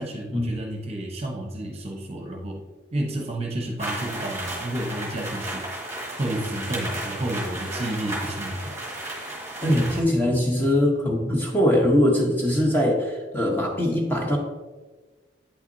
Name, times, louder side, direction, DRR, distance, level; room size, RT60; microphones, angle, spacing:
voice 1, 0.0-2.6 2.9-5.7 6.2-8.7, right 1 dB, 30° right, 1 dB, 0.9 m, -31 dB
sound 1, 3.8-10.0, right 1 dB, 15° right, 1.5 m, -33 dB
voice 2, 9.6-14.4, left 1 dB, 10° left, -1 dB, 0.8 m, -22 dB
8.5 x 5.8 x 2.7 m, 1.3 s
head